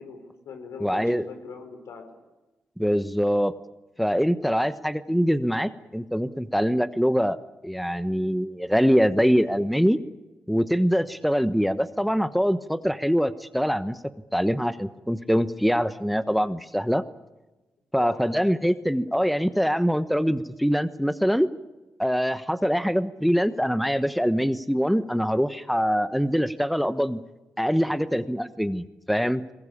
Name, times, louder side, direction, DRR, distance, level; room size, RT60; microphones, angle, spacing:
voice 1, 0.0-2.1 18.0-18.5 22.5-22.7, left 5 dB, 80° left, 6 dB, 5.1 m, -42 dB
voice 2, 0.8-1.2 2.8-3.5 4.0-7.4 7.6-10.0 10.5-14.0 14.3-17.0 17.9-21.5 22.0-27.2 27.6-29.4, equal, ahead, 13 dB, 1.1 m, -24 dB
22.0 x 21.0 x 8.6 m, 1.1 s
supercardioid pair, 50°, 5 cm